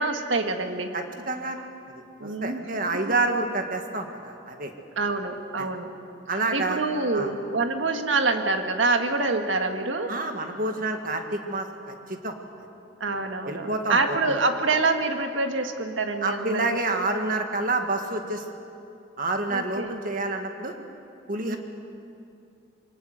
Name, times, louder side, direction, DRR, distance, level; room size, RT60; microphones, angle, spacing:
voice 1, 0.0-0.9 2.2-2.7 5.0-5.9 6.5-10.1 13.0-16.7 19.5-20.0 21.4-21.6, right 3 dB, 85° right, 5 dB, 1.8 m, -26 dB
voice 2, 0.9-4.7 5.6-5.7 6.3-6.8 7.1-7.3 10.1-12.4 13.4-14.4 16.2-18.4 19.2-20.7 21.3-21.6, right 2 dB, 45° right, 4 dB, 1.9 m, -28 dB
23.0 x 19.0 x 8.0 m, 2.6 s
head